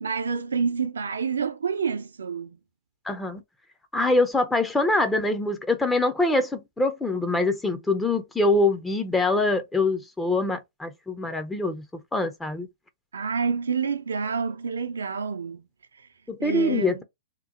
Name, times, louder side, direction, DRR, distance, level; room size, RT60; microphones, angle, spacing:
voice 1, 0.0-2.6 13.1-15.6 16.4-17.0, right 5 dB, 80° right, 0.6 m, -28 dB
voice 2, 3.0-3.4 3.9-11.9 12.1-12.7 16.3-17.0, left 2 dB, 10° left, 0.6 m, -24 dB
2.9 x 2.1 x 3.7 m
hypercardioid pair, 120°, 0 cm